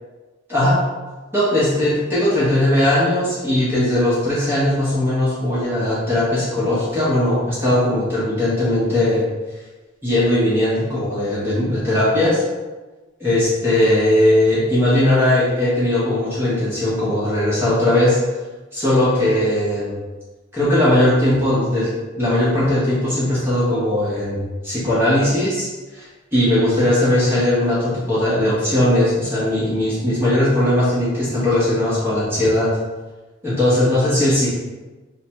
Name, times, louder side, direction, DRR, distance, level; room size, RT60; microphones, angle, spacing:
voice 1, 0.5-0.8 1.3-9.2 10.0-12.4 13.2-18.2 18.7-20.0 20.5-32.7 33.4-34.6, left 1 dB, 10° right, -10 dB, 0.7 m, -19 dB
3.2 x 2.1 x 2.8 m, 1.2 s
head